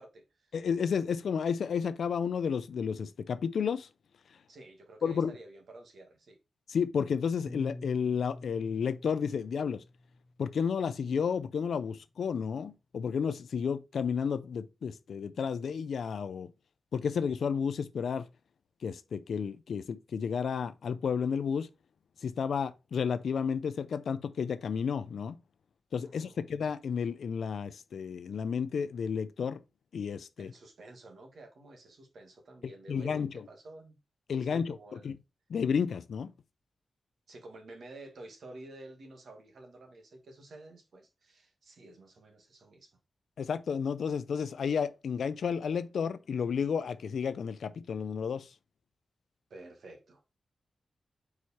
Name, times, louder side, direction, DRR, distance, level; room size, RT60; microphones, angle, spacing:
voice 1, 0.0-0.5 4.5-6.4 26.0-26.4 30.4-34.0 34.3-35.1 37.3-43.0 49.5-50.4, right 2 dB, 70° right, 1.7 m, -51 dB
voice 2, 0.5-3.9 5.0-5.3 6.7-9.8 10.4-16.5 16.9-18.3 18.8-21.7 22.2-25.4 25.9-29.6 29.9-30.5 32.9-33.3 34.3-35.2 35.5-36.3 43.4-48.5, left 6 dB, 85° left, 0.5 m, -32 dB
Piano, 7.5-11.9, left 2 dB, 20° left, 0.4 m, -49 dB
4.8 x 4.7 x 4.2 m
wide cardioid pair, 160°, 0 cm